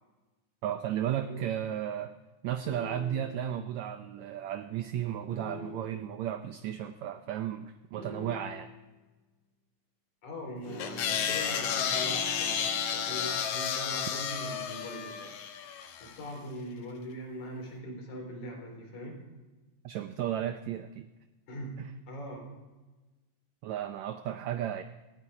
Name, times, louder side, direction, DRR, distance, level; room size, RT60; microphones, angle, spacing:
voice 1, 0.6-2.1 2.4-8.7 19.8-21.1 21.8-21.9 23.6-24.8, right 10 dB, 90° right, 9 dB, 1.5 m, -34 dB
voice 2, 1.1-1.5 10.2-15.4 16.0-19.2 21.5-22.5, equal, 55° left, 0 dB, 5.2 m, -41 dB
sound 1, 2.6-3.4 5.3-6.1 8.0-8.8 10.6-13.3, equal, 35° right, 5.5 m, -45 dB
sound 2, 10.8-16.1, left 8 dB, 80° left, 3.0 m, -32 dB
17.5 x 15.5 x 4.9 m, 1.2 s
omnidirectional pair, 4.0 m